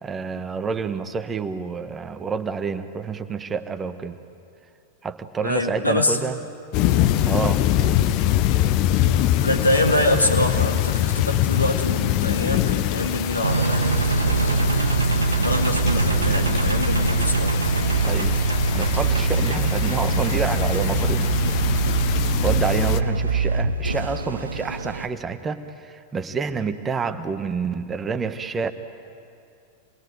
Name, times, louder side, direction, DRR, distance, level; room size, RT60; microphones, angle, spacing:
voice 1, 0.0-4.2 5.0-6.4 7.3-8.1 18.0-18.4 18.7-21.6 22.4-28.7, right 5 dB, 20° right, 9 dB, 1.2 m, -28 dB
voice 2, 5.4-6.2 9.0-14.9 15.4-17.6, left 1 dB, 85° left, 2 dB, 2.4 m, -25 dB
sound 1, 6.7-23.0, left 12 dB, 45° left, 0.7 m, -24 dB
Engine, 13.4-25.1, right 3 dB, 75° right, 1.0 m, -22 dB
27.0 x 21.0 x 9.4 m, 2.5 s
figure-of-eight pair, 90°, 0 cm